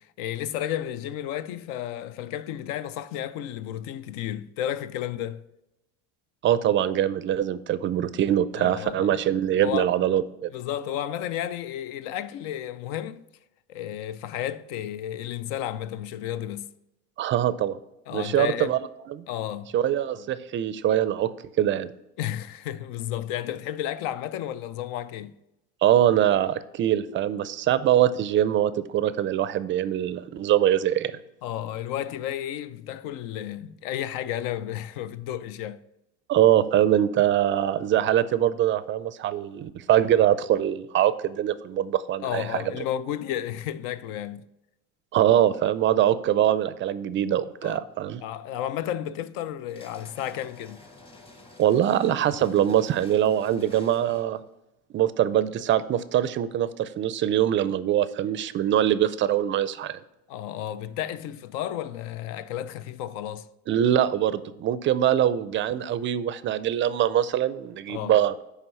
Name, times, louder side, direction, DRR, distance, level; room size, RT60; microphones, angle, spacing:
voice 1, 0.0-5.4 8.6-9.2 9.6-9.9 10.5-13.2 13.7-16.7 18.1-18.8 19.3-19.7 22.2-25.3 31.4-35.8 42.2-44.4 47.6-47.8 48.2-50.8 60.3-63.5 67.9-68.2, left 11 dB, 70° left, 0.5 m, -32 dB
voice 2, 6.4-10.5 17.2-17.8 18.1-18.8 19.1-19.2 19.7-21.3 21.6-21.9 25.8-31.1 36.3-42.6 45.1-48.2 51.6-54.4 54.9-59.9 63.7-68.4, right 11 dB, 35° right, 0.4 m, -23 dB
sound 1, 49.7-54.4, left 2 dB, 15° left, 1.2 m, -50 dB
9.1 x 3.4 x 5.4 m
supercardioid pair, 115°, 33 cm